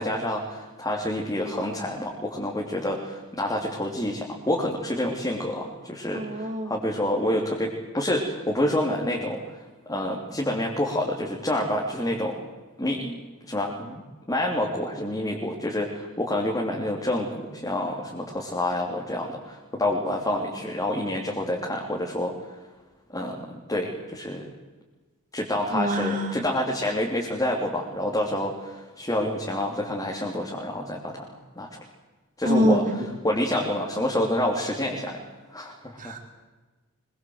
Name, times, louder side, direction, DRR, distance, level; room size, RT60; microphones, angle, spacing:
voice 1, 0.0-9.4 9.9-12.4 12.8-13.2 13.5-14.0 14.3-22.3 23.1-24.4 25.3-31.8 32.4-32.8 33.2-35.2 35.5-36.2, left 1 dB, 15° left, -1 dB, 3.1 m, -28 dB
voice 2, 6.1-6.8 25.7-26.3 32.4-32.8 36.0-36.2, equal, 35° right, 3 dB, 4.3 m, -24 dB
24.5 x 23.0 x 8.0 m, 1.2 s
head